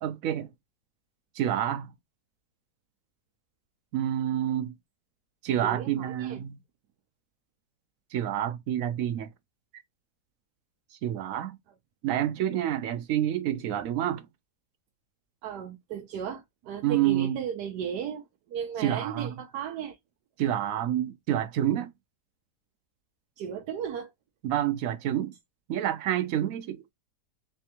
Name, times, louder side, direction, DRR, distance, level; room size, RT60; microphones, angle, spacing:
voice 1, 0.0-0.5 1.4-1.9 3.9-4.7 5.4-6.6 8.1-9.3 11.0-11.6 12.0-14.3 16.8-17.4 18.8-19.3 20.4-21.9 24.4-25.3 25.7-26.8, right 11 dB, 65° right, 1.0 m, -28 dB
voice 2, 5.6-6.4 15.4-20.0 23.4-24.1, right 8 dB, 85° right, 1.2 m, -35 dB
3.4 x 3.3 x 2.8 m
omnidirectional pair, 1.7 m